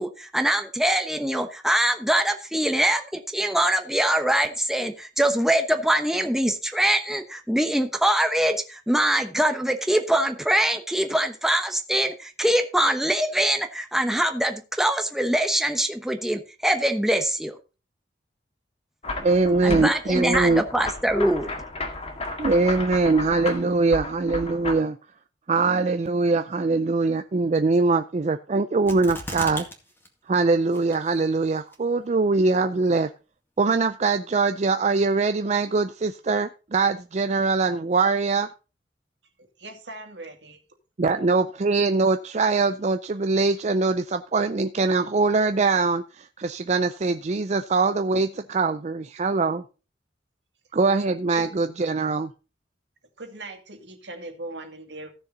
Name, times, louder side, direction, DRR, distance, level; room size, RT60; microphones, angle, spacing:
voice 1, 0.0-17.5 19.6-21.5, right 1 dB, ahead, 1.0 m, -23 dB
sound 1, 19.0-24.7, left 2 dB, 35° left, 2.0 m, -33 dB
voice 2, 19.2-20.6 22.4-25.0 25.5-29.7 30.3-33.1 33.6-38.5 41.0-49.6 50.7-52.3, right 3 dB, 40° right, 0.5 m, -22 dB
sound 2, 28.9-29.7 30.0-30.1 30.7-31.2 31.7-31.8, equal, 15° left, 2.0 m, -35 dB
voice 3, 39.4-40.6 51.3-51.7 53.2-55.1, right 2 dB, 85° right, 2.3 m, -40 dB
15.0 x 6.7 x 4.0 m
head